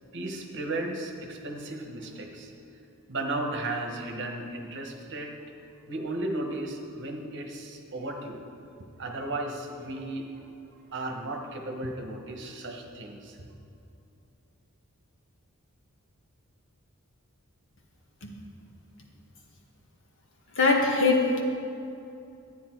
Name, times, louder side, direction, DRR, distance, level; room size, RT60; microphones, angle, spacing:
voice 1, 0.1-2.5 3.1-5.3 5.9-8.4 9.0-10.4 10.7-13.4, right 2 dB, 55° right, 2 dB, 1.3 m, -35 dB
voice 2, 20.6-21.4, left 3 dB, 60° left, 0 dB, 1.6 m, -22 dB
12.0 x 9.3 x 4.6 m, 2.7 s
head